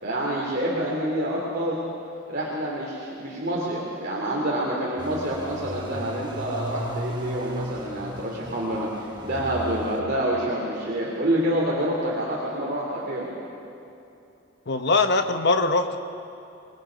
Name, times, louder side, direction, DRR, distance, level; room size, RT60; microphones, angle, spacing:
voice 1, 0.0-1.8 2.3-13.3, right 1 dB, 50° right, -4 dB, 2.9 m, -27 dB
sound 1, 5.0-10.0, equal, 20° right, 1.5 m, -36 dB
voice 2, 14.7-16.0, left 3 dB, 55° left, 7 dB, 1.2 m, -21 dB
28.0 x 20.5 x 5.2 m, 2.8 s
head